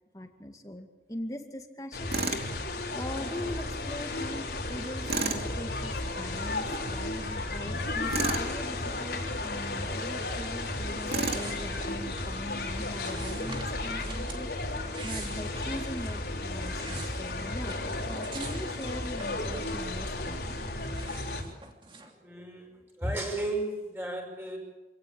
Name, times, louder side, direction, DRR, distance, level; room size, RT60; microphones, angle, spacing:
voice 1, 0.1-2.6 2.9-14.5 15.0-17.8 18.1-20.4, left 1 dB, 20° left, 5 dB, 2.1 m, -41 dB
sound 1, 1.9-21.4, left 2 dB, 70° left, 4.2 m, -34 dB
Tools, 2.1-2.5 5.1-5.5 8.1-8.5 11.1-11.5, right 4 dB, 65° right, 2.4 m, -30 dB
sound 2, 11.3-12.4 13.0-14.4 14.8-15.9 16.5-20.1 20.4-22.1, right 4 dB, 30° right, 3.0 m, -46 dB
voice 2, 22.1-24.6, right 1 dB, 15° right, 1 dB, 5.9 m, -34 dB
27.0 x 17.5 x 8.8 m, 1.1 s
head